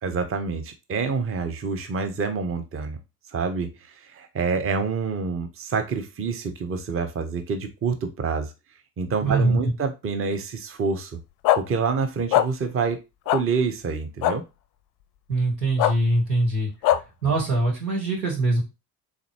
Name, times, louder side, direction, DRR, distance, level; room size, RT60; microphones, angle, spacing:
voice 1, 0.0-3.0 3.3-8.5 9.0-11.2 11.5-13.0 13.3-14.4, right 5 dB, 30° right, 7 dB, 0.7 m, -27 dB
voice 2, 9.2-9.6 15.3-16.7 17.2-18.6, right 2 dB, 85° right, -2 dB, 1.5 m, -22 dB
sound 1, 11.4-11.6 12.3-12.5 13.3-13.4 14.2-14.3 15.8-15.9 16.8-17.0, left 13 dB, 50° left, 0.4 m, -19 dB
3.9 x 3.3 x 2.9 m, 0.26 s
figure-of-eight pair, 50°, 48 cm